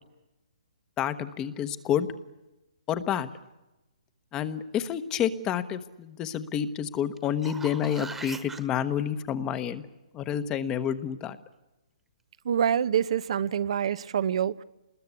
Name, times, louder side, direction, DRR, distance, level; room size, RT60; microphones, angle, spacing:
voice 1, 1.0-2.1 2.9-3.3 4.3-9.8 10.1-11.4, left 9 dB, 20° left, 1.1 m, -29 dB
sound 1, 7.2-8.6 13.4-13.5, right 4 dB, 5° right, 1.5 m, -41 dB
voice 2, 12.4-14.6, right 8 dB, 55° right, 0.8 m, -26 dB
27.0 x 21.0 x 8.3 m
hypercardioid pair, 160°, 4 cm